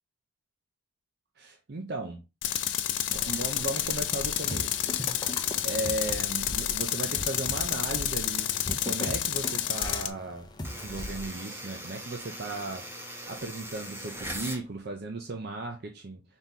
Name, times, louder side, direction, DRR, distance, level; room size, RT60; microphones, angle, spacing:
voice 1, 1.4-2.2 3.1-5.0 5.6-12.9 13.3-16.2, right 2 dB, 60° right, 0.6 m, -36 dB
Tools, 2.4-10.1, left 11 dB, 80° left, 0.5 m, -30 dB
sound 1, 3.1-11.3, left 1 dB, 25° left, 0.6 m, -40 dB
sound 2, 10.6-14.6, right 1 dB, 15° right, 1.0 m, -40 dB
4.1 x 3.0 x 3.6 m
head